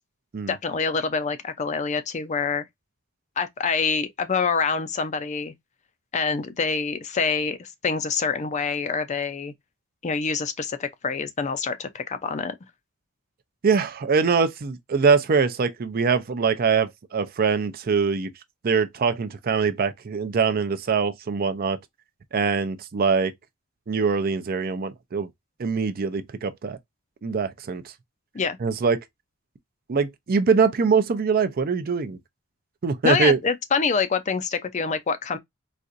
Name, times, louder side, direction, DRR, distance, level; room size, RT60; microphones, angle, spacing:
voice 1, 0.5-2.6 3.4-5.5 6.1-9.5 10.0-12.5 28.3-28.6 33.0-35.4, left 5 dB, 35° left, 0.4 m, -26 dB
voice 2, 13.6-18.3 18.6-21.8 22.3-23.3 23.9-25.3 25.6-26.8 27.2-27.9 28.6-29.0 29.9-32.2 32.8-33.4, right 5 dB, 45° right, 0.5 m, -23 dB
4.1 x 2.5 x 2.4 m
head